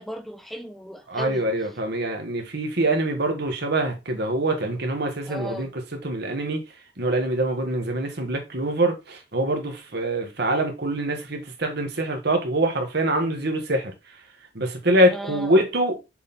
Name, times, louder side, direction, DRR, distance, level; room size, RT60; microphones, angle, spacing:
voice 1, 0.0-1.4 5.3-5.7 15.1-15.5, equal, ahead, 0.8 m, -36 dB
voice 2, 1.1-6.6 7.0-13.9 14.5-16.0, right 1 dB, 60° right, 1.7 m, -24 dB
6.7 x 4.3 x 3.6 m
head